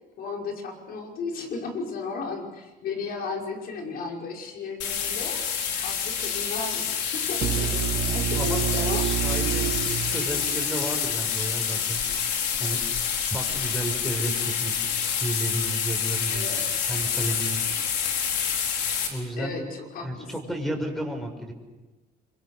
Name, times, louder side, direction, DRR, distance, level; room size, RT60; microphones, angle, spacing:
voice 1, 0.2-5.4 5.8-6.8 7.1-9.1 9.4-9.5 9.9-10.0 16.3-16.7 19.4-20.3, left 4 dB, 65° left, 1 dB, 5.6 m, -34 dB
sound 1, 4.8-19.1, left 7 dB, 85° left, 4.4 m, -27 dB
sound 2, 7.4-11.3, right 13 dB, 60° right, 0.8 m, -29 dB
voice 2, 8.9-12.0 12.6-12.8 13.3-16.4 16.9-17.6 19.1-19.5 20.0-21.5, right 1 dB, ahead, 4 dB, 6.1 m, -32 dB
26.5 x 24.0 x 6.5 m, 1.1 s
cardioid pair, 110°, 17 cm